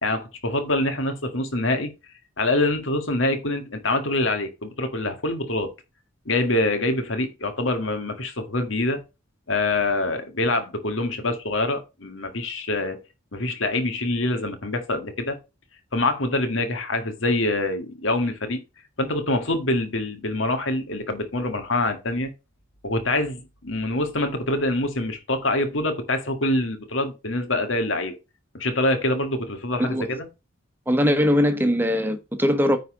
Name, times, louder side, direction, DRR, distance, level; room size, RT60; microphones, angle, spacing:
voice 1, 0.0-1.9 2.4-5.7 6.3-9.0 9.5-13.0 13.3-15.4 15.9-18.6 19.0-22.3 22.8-28.2 28.5-30.3, left 2 dB, 70° left, 1.9 m, -25 dB
voice 2, 30.9-32.8, equal, 10° right, 1.1 m, -21 dB
9.3 x 4.2 x 5.0 m
head